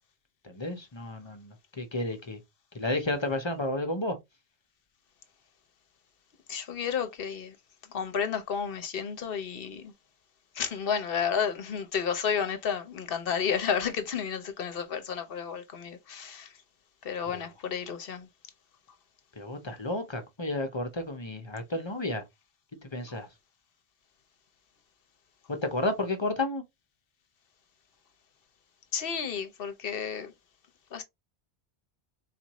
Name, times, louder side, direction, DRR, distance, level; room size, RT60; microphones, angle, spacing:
voice 1, 0.4-2.4 2.7-4.2 17.3-17.5 19.4-22.2 22.8-23.3 25.6-26.6, left 2 dB, 30° left, 0.7 m, -32 dB
voice 2, 6.5-7.6 7.9-9.9 10.5-16.6 17.0-18.3 28.9-30.3 30.9-31.0, left 7 dB, 60° left, 0.8 m, -31 dB
4.1 x 2.5 x 2.9 m
omnidirectional pair, 1.1 m